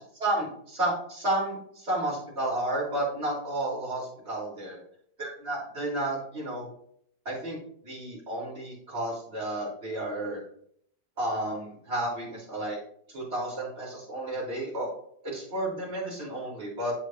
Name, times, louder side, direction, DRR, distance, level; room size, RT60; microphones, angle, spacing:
voice 1, 0.2-4.8 5.2-6.7 7.3-10.4 11.2-12.8 13.1-14.9 15.2-16.9, right 1 dB, 35° right, -5 dB, 3.8 m, -32 dB
8.7 x 8.2 x 2.6 m, 0.64 s
omnidirectional pair, 1.9 m